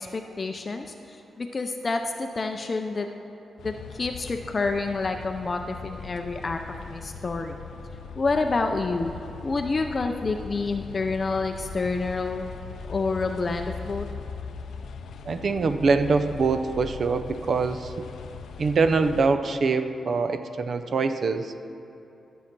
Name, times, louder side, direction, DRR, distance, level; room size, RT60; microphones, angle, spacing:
voice 1, 0.0-3.1 3.6-6.6 6.9-7.6 8.2-9.1 9.4-12.5 12.8-14.1, left 3 dB, 30° left, 5 dB, 0.5 m, -28 dB
sound 1, 3.6-19.3, left 6 dB, 85° left, 0.5 m, -40 dB
voice 2, 15.2-18.1 18.6-21.6, right 4 dB, 50° right, 9 dB, 0.6 m, -24 dB
12.5 x 7.2 x 6.0 m, 2.9 s
wide cardioid pair, 145°, 0 cm